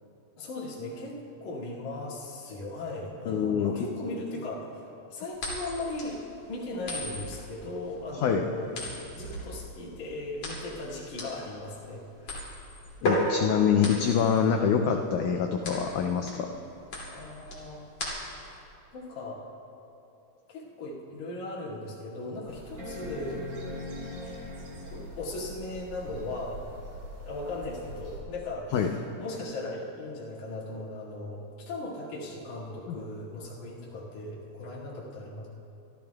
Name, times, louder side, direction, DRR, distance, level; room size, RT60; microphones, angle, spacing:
voice 1, 0.4-4.8 5.1-6.2 6.5-8.7 9.1-12.5 17.1-17.8 18.4-18.6 18.9-19.4 20.5-23.5 24.3-24.4 24.9-26.6 27.3-35.5, left 2 dB, 55° left, -6 dB, 3.4 m, -38 dB
voice 2, 3.3-3.7 8.2-8.4 13.0-16.5 28.7-28.9 32.9-33.0, left 7 dB, 90° left, 4 dB, 1.7 m, -25 dB
sound 1, 5.4-18.6, left 1 dB, 40° left, 3.3 m, -35 dB
sound 2, 20.6-20.7 21.3-21.4 22.8-25.3 27.0-27.1, left 2 dB, 40° right, 3.1 m, -41 dB
sound 3, 22.5-28.2, right 1 dB, 75° right, 5.1 m, -44 dB
26.0 x 13.5 x 2.3 m, 2.8 s
omnidirectional pair, 4.2 m